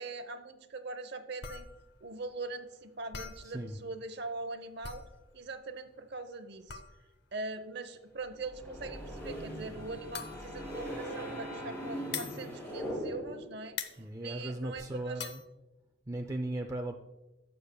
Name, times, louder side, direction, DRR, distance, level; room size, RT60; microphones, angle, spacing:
voice 1, 0.0-1.7 2.0-5.0 5.3-6.8 7.3-15.3, right 3 dB, 55° right, 9 dB, 0.8 m, -42 dB
sound 1, 1.4-13.4 13.7-15.5, left 7 dB, 55° left, 0.7 m, -44 dB
voice 2, 3.4-3.8 14.0-15.4 16.1-17.0, right 1 dB, 15° right, 4 dB, 0.4 m, -37 dB
sound 2, 8.3-13.6, equal, 10° left, 2.7 m, -40 dB
15.0 x 6.7 x 2.2 m, 1.0 s
head